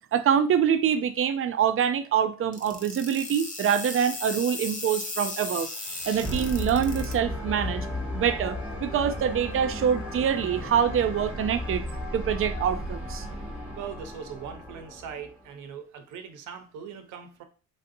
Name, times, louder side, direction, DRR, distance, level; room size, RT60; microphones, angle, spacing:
voice 1, 0.1-5.7 6.1-7.9 8.1-11.8 12.1-13.3, right 8 dB, 45° right, 0.4 m, -25 dB
sound 1, 2.5-7.1, left 2 dB, 25° left, 0.7 m, -36 dB
sound 2, 5.3-15.5, left 1 dB, 5° right, 0.9 m, -35 dB
voice 2, 13.8-17.4, right 7 dB, 85° right, 0.6 m, -40 dB
3.3 x 2.6 x 2.6 m
cardioid pair, 90°, 30 cm